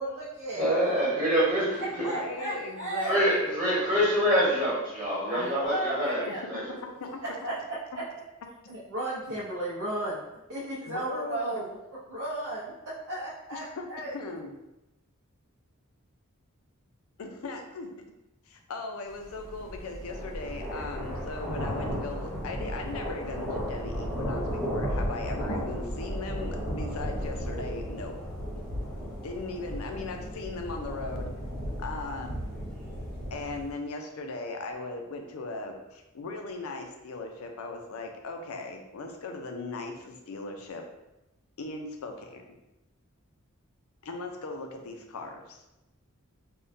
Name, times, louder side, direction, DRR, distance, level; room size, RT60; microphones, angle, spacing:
voice 1, 0.0-0.7 2.0-3.2 5.3-6.4 7.4-7.5 7.9-8.0 8.7-10.2 10.5-11.8 12.1-13.6 13.9-14.1, right 1 dB, 80° right, -7 dB, 0.6 m, -34 dB
voice 2, 0.5-1.8 3.1-6.6, equal, 30° right, -9 dB, 1.1 m, -25 dB
voice 3, 2.0-3.8 5.3-5.5 6.3-7.2 10.9-11.6 13.5-13.9 14.1-14.5 17.2-17.9 18.5-28.2 29.2-31.3 31.8-32.4 33.3-40.8 41.6-42.6 44.0-45.6, left 3 dB, 85° left, 4 dB, 0.5 m, -38 dB
sound 1, 19.2-33.7, equal, 5° left, 0.8 m, -34 dB
3.5 x 2.2 x 2.6 m, 0.94 s
head